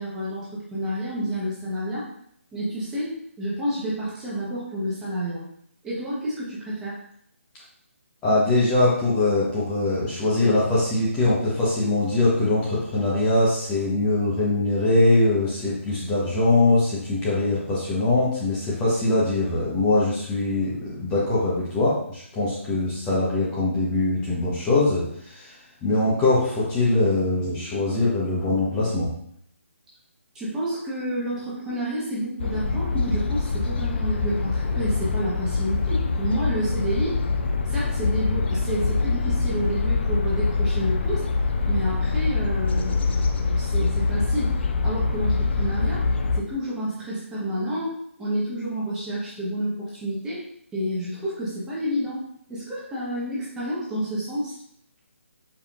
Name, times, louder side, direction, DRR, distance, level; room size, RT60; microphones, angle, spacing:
voice 1, 0.0-2.1 2.5-5.4 5.8-7.0 30.3-37.2 37.7-41.2 41.7-44.5 44.8-46.0 46.4-50.4 50.7-52.2 52.5-54.5, right 1 dB, 10° right, -8 dB, 1.1 m, -29 dB
voice 2, 8.2-25.5 25.8-29.1, left 2 dB, 15° left, -8 dB, 1.0 m, -22 dB
Stadt - Winter Morgen Vögel, 32.4-46.4, left 4 dB, 50° left, 0.5 m, -24 dB
4.7 x 3.4 x 2.5 m, 0.69 s
figure-of-eight pair, 150°, 7 cm